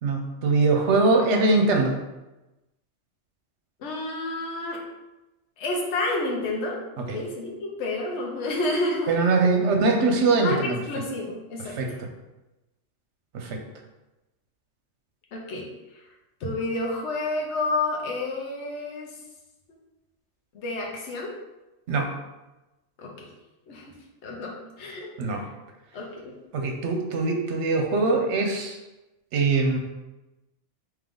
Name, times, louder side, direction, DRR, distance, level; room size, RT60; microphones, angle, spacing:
voice 1, 0.0-2.0 7.1-7.2 9.1-10.8 11.7-11.9 13.3-13.6 21.9-22.1 25.2-25.4 26.5-28.8 29.3-29.8, right 3 dB, 75° right, 3 dB, 1.0 m, -22 dB
voice 2, 3.8-4.8 5.6-9.1 10.4-12.0 15.3-15.7 16.4-19.1 20.5-21.3 23.0-23.3 23.7-23.9 24.2-25.1 25.9-26.4, left 2 dB, 70° left, -1 dB, 1.1 m, -30 dB
3.6 x 3.0 x 3.7 m, 1.0 s
omnidirectional pair, 1.2 m